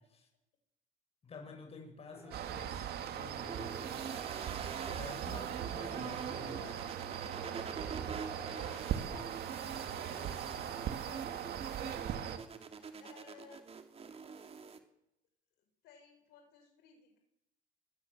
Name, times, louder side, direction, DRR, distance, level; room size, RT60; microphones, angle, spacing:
voice 1, 1.2-4.5 4.9-6.9, left 4 dB, 35° left, 7.6 m, -50 dB
sound 1, 2.1-11.0, right 2 dB, 15° right, 6.6 m, -54 dB
sound 2, 2.3-12.4, right 9 dB, 70° right, 2.6 m, -40 dB
sound 3, 3.5-14.8, right 6 dB, 35° right, 2.8 m, -46 dB
voice 2, 8.4-12.4 13.0-13.9 15.8-17.2, left 6 dB, 85° left, 6.5 m, -58 dB
25.5 x 21.5 x 7.6 m
cardioid pair, 110°, 17 cm